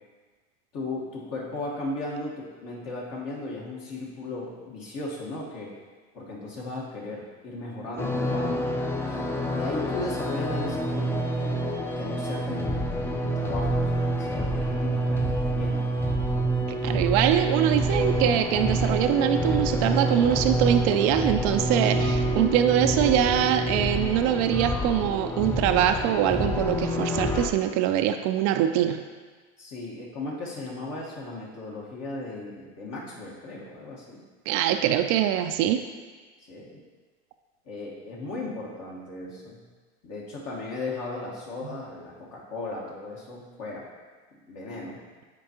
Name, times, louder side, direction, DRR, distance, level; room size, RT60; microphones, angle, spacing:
voice 1, 0.7-5.7 6.1-8.7 9.0-12.9 13.2-15.9 29.6-34.2 36.5-36.8 37.7-39.6 40.0-43.9 44.5-45.0, left 2 dB, 50° left, -4 dB, 1.4 m, -36 dB
sound 1, 8.0-27.5, right 1 dB, 5° left, 0.5 m, -27 dB
voice 2, 16.8-29.0 34.5-35.8 41.6-41.7, right 10 dB, 55° right, 7 dB, 0.5 m, -23 dB
8.8 x 4.6 x 2.9 m, 1.4 s
supercardioid pair, 100°, 34 cm